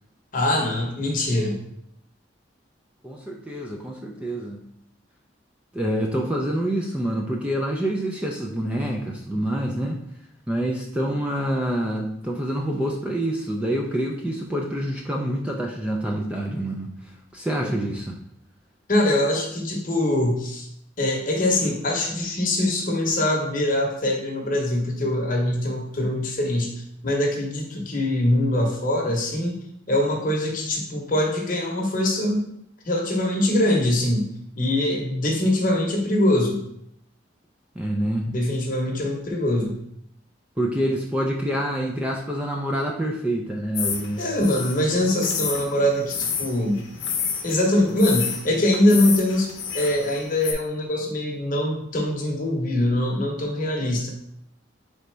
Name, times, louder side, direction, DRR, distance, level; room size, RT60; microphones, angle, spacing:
voice 1, 0.3-1.5 17.6-17.7 18.9-20.7 21.0-26.7 27.0-29.6 29.9-32.4 32.9-34.3 34.6-36.6 38.3-39.7 44.2-46.8 47.4-54.1, left 1 dB, 45° left, 0 dB, 0.8 m, -23 dB
voice 2, 3.0-4.6 5.7-10.0 10.5-16.9 17.3-18.2 37.8-38.3 40.6-44.2, right 1 dB, 5° right, 0 dB, 0.3 m, -26 dB
sound 1, 43.7-50.5, left 6 dB, 85° left, 0.7 m, -30 dB
3.9 x 3.3 x 3.2 m, 0.72 s
head